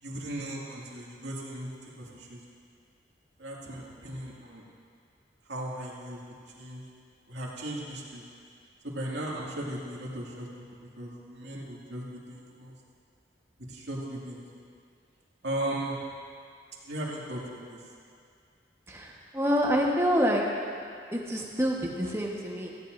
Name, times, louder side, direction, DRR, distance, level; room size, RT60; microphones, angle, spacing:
voice 1, 0.0-2.4 3.4-4.6 5.5-6.2 6.6-6.8 7.3-8.2 8.8-10.5 11.0-12.7 13.7-14.6 15.4-16.1 16.8-17.8, right 1 dB, 80° right, -4 dB, 2.2 m, -37 dB
voice 2, 18.9-20.5 21.1-22.7, equal, 15° right, -2 dB, 1.2 m, -27 dB
17.0 x 15.0 x 2.6 m, 2.3 s
head